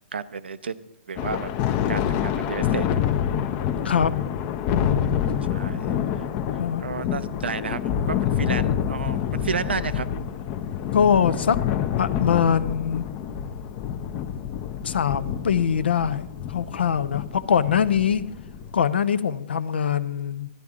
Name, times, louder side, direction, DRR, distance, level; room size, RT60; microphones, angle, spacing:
voice 1, 0.1-1.5 1.9-3.0 5.5-6.2 6.8-10.1, right 5 dB, 85° right, 14 dB, 0.5 m, -32 dB
Thunder, 1.2-18.8, left 9 dB, 40° left, 0.6 m, -27 dB
voice 2, 4.7-5.1 6.6-6.8 10.9-11.6 12.0-13.0 14.8-18.3 18.7-20.5, left 7 dB, 80° left, 15 dB, 0.6 m, -23 dB
12.5 x 10.5 x 3.6 m, 0.94 s
hypercardioid pair, 120°, 6 cm